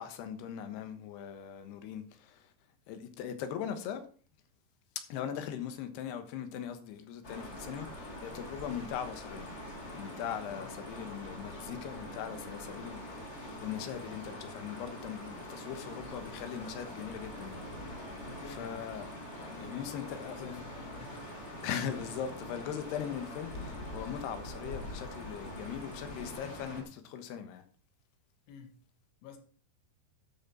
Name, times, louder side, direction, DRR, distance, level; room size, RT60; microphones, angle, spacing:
voice 1, 0.0-2.5 2.9-4.0 5.1-9.5 9.9-17.7 18.0-19.1 19.4-20.5 21.6-27.6, left 8 dB, 70° left, 3.1 m, -40 dB
sound 1, 7.2-26.8, left 1 dB, 45° left, 0.8 m, -44 dB
voice 2, 18.2-18.8 19.4-21.2 28.5-28.7 29.2-29.4, left 6 dB, 90° left, 4.0 m, -50 dB
12.5 x 7.4 x 4.4 m
omnidirectional pair, 5.3 m